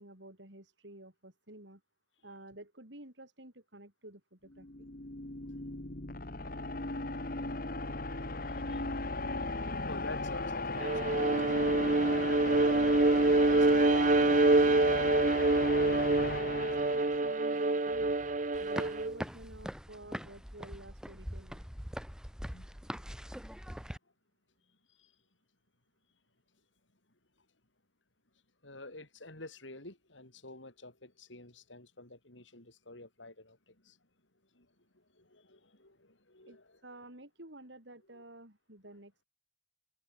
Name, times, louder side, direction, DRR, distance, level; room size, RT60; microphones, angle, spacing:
voice 1, 0.0-1.8 2.2-4.9 16.2-18.2 18.6-21.6 36.5-39.2, right 1 dB, 75° right, 5.7 m, -51 dB
sound 1, 4.5-17.6, left 2 dB, 50° left, 2.1 m, -37 dB
voice 2, 8.5-8.9 9.9-14.2 22.5-22.8 24.9-25.1 28.6-34.0 34.5-36.8 38.1-38.2, left 2 dB, 90° left, 7.4 m, -50 dB
Bowed string instrument, 10.8-19.2, right 2 dB, 45° right, 0.9 m, -26 dB
sound 2, 18.5-24.0, equal, 5° right, 2.0 m, -42 dB
head